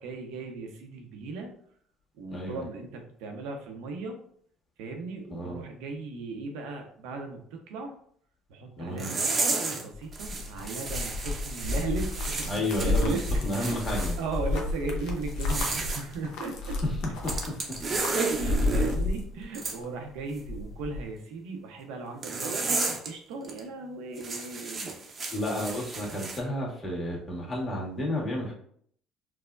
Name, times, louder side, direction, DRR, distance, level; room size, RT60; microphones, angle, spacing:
voice 1, 0.0-1.5 2.2-4.2 4.8-7.9 8.5-13.8 14.2-16.8 18.2-24.9, right 3 dB, 80° right, 3 dB, 0.7 m, -37 dB
voice 2, 2.3-2.6 5.3-5.6 8.8-9.1 12.5-13.2 13.4-14.1 25.3-28.5, left 1 dB, 25° left, -3 dB, 1.5 m, -31 dB
sound 1, 9.0-9.8 10.1-14.2 15.3-16.0 17.2-19.0 19.5-19.8 22.2-23.1 23.4-23.6 24.2-26.4, right 3 dB, 40° right, 0.7 m, -32 dB
sound 2, 9.9-19.8 20.2-21.1, left 2 dB, 75° left, 0.7 m, -31 dB
4.6 x 2.1 x 2.4 m, 0.62 s
supercardioid pair, 80°, 0 cm